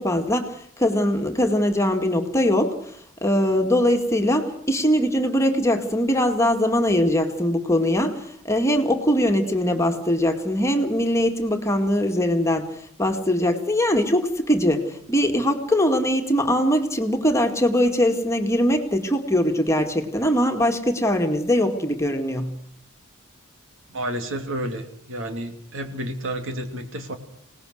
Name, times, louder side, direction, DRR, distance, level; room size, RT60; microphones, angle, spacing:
voice 1, 0.0-2.7 3.2-8.2 8.4-12.7 13.0-22.6, equal, 15° left, 4 dB, 2.1 m, -21 dB
voice 2, 23.9-27.1, right 1 dB, 65° right, 6 dB, 2.9 m, -30 dB
27.0 x 19.0 x 6.5 m, 0.64 s
head